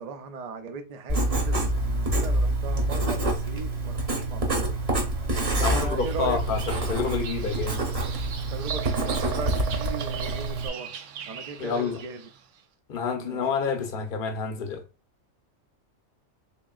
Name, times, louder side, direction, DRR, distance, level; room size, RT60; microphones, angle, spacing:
voice 1, 0.0-4.8 5.6-6.4 8.5-10.9 11.3-12.3 13.2-13.4, right 4 dB, 55° right, 0.4 m, -38 dB
Writing, 1.1-10.7, right 1 dB, 30° right, 0.9 m, -27 dB
voice 2, 5.5-6.6 6.9-7.8 11.6-12.0 12.9-14.8, left 5 dB, 50° left, 0.8 m, -28 dB
Bird vocalization bird call bird song, 5.7-12.4, right 7 dB, 70° right, 0.9 m, -37 dB
3.7 x 3.6 x 2.4 m
omnidirectional pair, 1.4 m